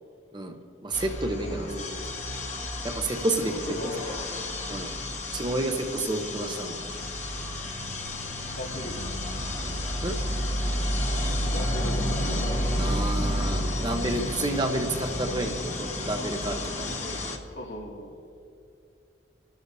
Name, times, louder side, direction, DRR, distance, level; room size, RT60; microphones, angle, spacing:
voice 1, 0.8-1.7 2.8-3.5 4.7-4.9 5.3-6.8 10.0-10.2 12.8-16.9, right 2 dB, 25° right, 4 dB, 0.8 m, -30 dB
sound 1, 0.9-17.4, left 1 dB, 40° left, 1.4 m, -31 dB
voice 2, 1.4-2.0 3.7-4.1 8.6-8.9 11.5-12.0 17.0-17.2 17.6-18.1, left 1 dB, 85° left, -2 dB, 2.4 m, -37 dB
28.0 x 12.5 x 2.7 m, 2.5 s
head